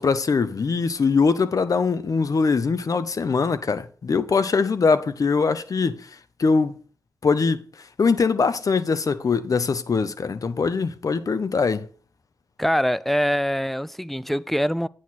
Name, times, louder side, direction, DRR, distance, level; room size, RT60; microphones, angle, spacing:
voice 1, 0.0-6.1 6.4-6.8 7.2-7.6 8.0-11.9, left 4 dB, 50° left, 0.7 m, -22 dB
voice 2, 12.6-14.9, equal, ahead, 0.3 m, -23 dB
9.2 x 6.3 x 4.2 m
wide cardioid pair, 95°, 7 cm